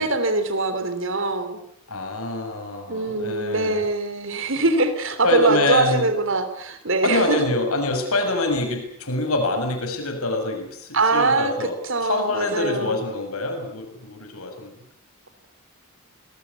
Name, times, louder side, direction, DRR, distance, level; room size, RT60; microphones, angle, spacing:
voice 1, 0.0-1.6 2.9-7.4 10.9-13.0, right 2 dB, 55° right, 10 dB, 3.4 m, -23 dB
voice 2, 1.9-3.8 5.2-6.1 7.0-11.7 12.0-14.7, left 2 dB, 80° left, 4 dB, 6.8 m, -25 dB
27.5 x 20.5 x 8.5 m, 0.70 s
head